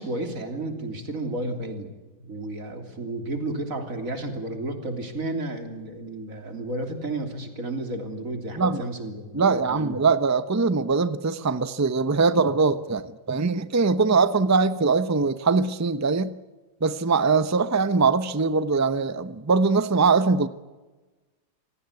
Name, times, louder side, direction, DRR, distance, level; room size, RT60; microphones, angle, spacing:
voice 1, 0.0-1.9 2.2-10.0, right 2 dB, 45° right, 3.6 m, -32 dB
voice 2, 9.3-16.3 16.8-20.5, right 4 dB, 20° right, 0.4 m, -22 dB
27.0 x 17.5 x 8.4 m
omnidirectional pair, 2.0 m